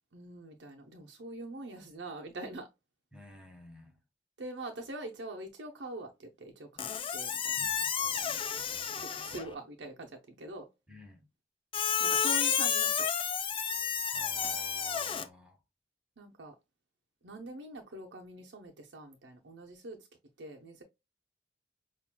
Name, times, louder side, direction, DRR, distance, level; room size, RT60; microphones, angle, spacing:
voice 1, 0.1-2.7 4.4-7.6 8.6-10.7 12.0-13.1 16.2-16.5 17.2-20.0 20.4-20.8, right 2 dB, 75° right, 0.7 m, -44 dB
voice 2, 3.1-3.9 7.6-7.9 10.9-11.2 14.1-15.6, left 1 dB, 5° right, 1.1 m, -52 dB
Squeak, 6.8-9.5 11.7-15.2, left 7 dB, 30° left, 0.5 m, -31 dB
5.8 x 2.5 x 2.2 m
head